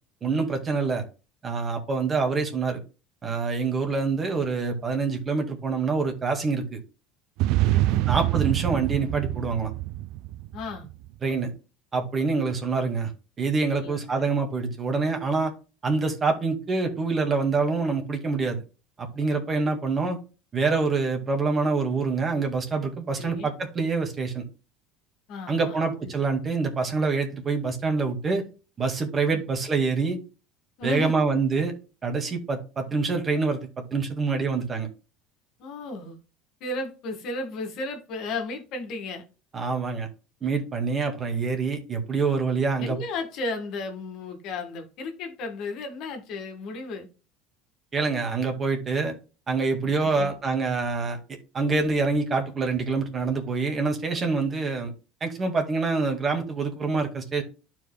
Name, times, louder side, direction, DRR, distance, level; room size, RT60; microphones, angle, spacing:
voice 1, 0.2-1.0 1.4-2.8 3.2-6.8 8.1-9.7 11.2-11.5 11.9-13.1 13.4-15.5 15.8-18.6 19.0-20.2 20.5-24.4 25.5-28.4 28.8-30.2 30.8-31.7 32.0-33.6 33.9-34.9 39.5-40.1 40.4-43.0 47.9-49.1 49.5-51.2 51.5-54.9 55.2-57.4, right 4 dB, 30° right, 1.9 m, -26 dB
sound 1, 7.4-10.9, right 16 dB, 70° right, 0.3 m, -25 dB
voice 2, 7.6-8.1 10.5-10.9 13.7-14.0 23.2-23.5 25.3-26.1 29.3-29.4 30.8-31.1 35.6-36.2 36.6-39.2 42.8-47.1 49.8-50.4, left 3 dB, 60° left, 1.9 m, -34 dB
12.5 x 4.7 x 2.2 m
supercardioid pair, 90°, 0 cm